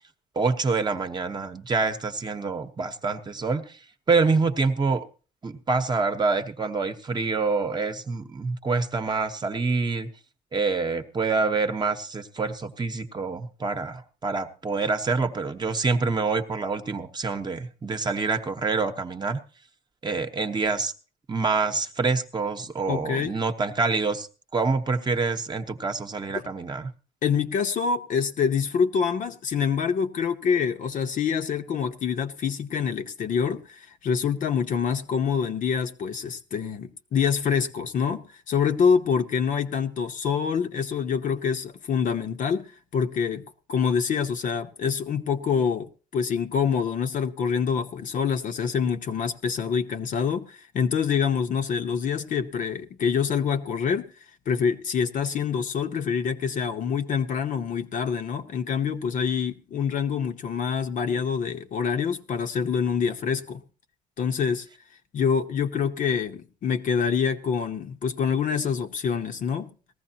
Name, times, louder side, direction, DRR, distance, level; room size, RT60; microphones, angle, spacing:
voice 1, 0.3-3.8 4.1-5.1 5.4-10.1 10.5-19.4 20.0-20.9 21.3-24.3 24.5-26.9, right 4 dB, 25° right, 1.0 m, -26 dB
voice 2, 22.9-23.3 26.3-26.4 27.2-43.4 43.7-54.1 54.5-63.6 64.2-64.7 65.1-69.7, left 6 dB, 50° left, 0.9 m, -26 dB
19.0 x 14.5 x 2.9 m
cardioid pair, 110°, 17 cm